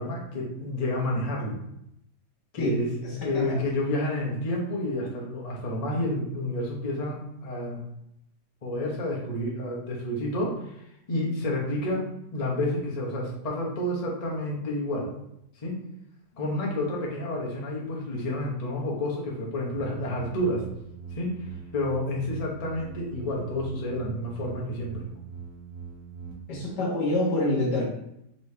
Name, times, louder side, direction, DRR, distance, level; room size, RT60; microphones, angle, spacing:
voice 1, 0.0-1.6 2.5-2.9 3.2-7.8 8.6-10.7 11.1-12.0 12.3-15.1 15.6-15.8 16.3-20.6 21.1-21.3 21.7-25.0, left 1 dB, 35° left, -3 dB, 0.7 m, -29 dB
voice 2, 3.0-3.5 26.5-27.8, left 1 dB, 80° left, -2 dB, 1.7 m, -26 dB
sound 1, 19.7-26.3, right 5 dB, 25° right, 0.6 m, -42 dB
4.2 x 3.1 x 3.1 m, 0.79 s
omnidirectional pair, 1.8 m